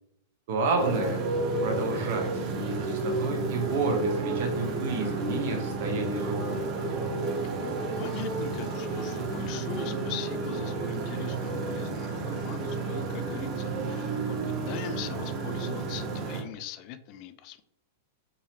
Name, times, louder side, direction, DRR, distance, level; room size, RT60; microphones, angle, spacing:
voice 1, 0.5-1.2 1.6-6.6, right 3 dB, 60° right, 3 dB, 1.0 m, -30 dB
Motorcycle, 0.8-16.4, right 3 dB, 35° right, 0.7 m, -31 dB
voice 2, 8.0-14.4 14.7-17.6, left 10 dB, 45° left, 11 dB, 0.3 m, -41 dB
3.7 x 2.9 x 2.9 m, 0.80 s
hypercardioid pair, 140°, 0 cm